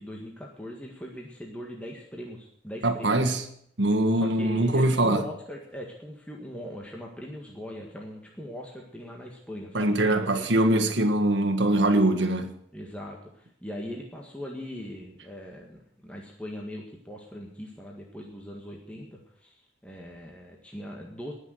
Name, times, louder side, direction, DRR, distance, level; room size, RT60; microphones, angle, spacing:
voice 1, 0.0-3.3 4.1-10.6 12.7-21.3, equal, 5° left, 1.7 m, -40 dB
voice 2, 2.8-3.4 3.8-5.3 9.7-12.5, right 1 dB, 75° right, 1.6 m, -23 dB
19.0 x 6.6 x 7.8 m
head